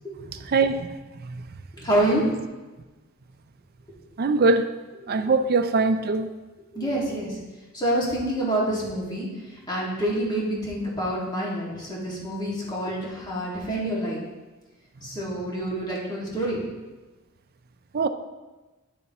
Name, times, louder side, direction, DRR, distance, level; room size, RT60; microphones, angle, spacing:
voice 1, 0.3-0.9 4.2-4.7 5.1-6.3 17.9-18.1, right 3 dB, 45° right, 9 dB, 0.5 m, -22 dB
voice 2, 1.8-2.3 5.0-5.2 6.7-7.4 7.7-9.3 9.7-14.2 15.0-16.6, right 1 dB, 20° left, -5 dB, 1.9 m, -27 dB
9.9 x 7.0 x 3.0 m, 1.2 s
head